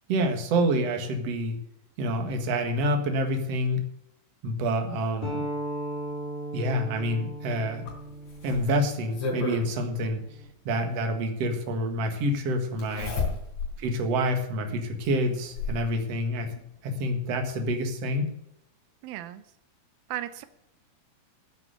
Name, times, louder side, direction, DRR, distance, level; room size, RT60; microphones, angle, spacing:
voice 1, 0.1-1.6 2.0-3.9 4.4-5.4 6.5-7.9 8.4-10.2 10.6-13.1 13.8-16.5 16.8-18.3, equal, 50° right, 2.6 m, -27 dB
sound 1, 5.2-10.4, right 1 dB, 15° left, 3.6 m, -37 dB
Zipper (clothing), 7.9-9.6 11.1-11.2 12.8-13.8 14.2-14.3 15.0-15.9 17.1-17.2 17.5-17.6, left 3 dB, 55° left, 4.9 m, -32 dB
voice 2, 13.0-13.4 19.0-19.4 20.1-20.5, right 13 dB, 85° right, 2.5 m, -37 dB
10.5 x 8.4 x 8.0 m
omnidirectional pair, 4.1 m